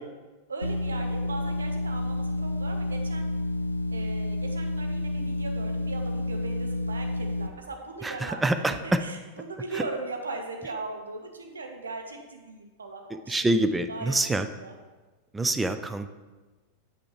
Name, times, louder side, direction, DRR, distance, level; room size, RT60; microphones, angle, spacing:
voice 1, 0.5-3.3 3.9-13.5 13.9-14.8, right 3 dB, 75° right, 4 dB, 0.8 m, -39 dB
sound 1, 0.6-7.5, left 1 dB, 90° left, 0.3 m, -30 dB
voice 2, 8.0-9.0 9.7-9.8 13.3-14.5 15.3-16.1, right 2 dB, 10° right, 10 dB, 0.4 m, -26 dB
8.3 x 5.5 x 3.2 m, 1.3 s
figure-of-eight pair, 90°, 0 cm